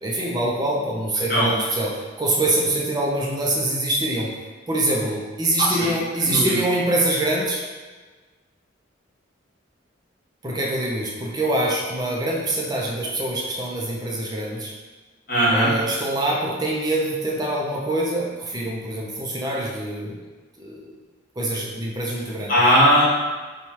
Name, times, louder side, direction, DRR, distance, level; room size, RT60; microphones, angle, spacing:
voice 1, 0.0-4.3 4.7-7.6 10.4-14.7 15.5-20.2 20.6-20.9 21.4-22.5, right 1 dB, 20° right, -3 dB, 0.5 m, -24 dB
voice 2, 15.3-15.7 22.5-23.0, equal, 45° left, -8 dB, 1.2 m, -18 dB
3.1 x 2.3 x 4.2 m, 1.3 s
head